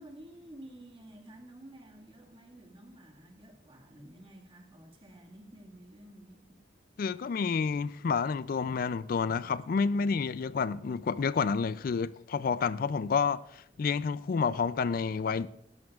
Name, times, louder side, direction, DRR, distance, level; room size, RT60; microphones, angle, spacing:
voice 1, 0.0-6.6, right 1 dB, 30° right, 1.9 m, -51 dB
voice 2, 7.0-15.5, left 5 dB, 50° left, 0.3 m, -29 dB
17.5 x 12.5 x 2.4 m
head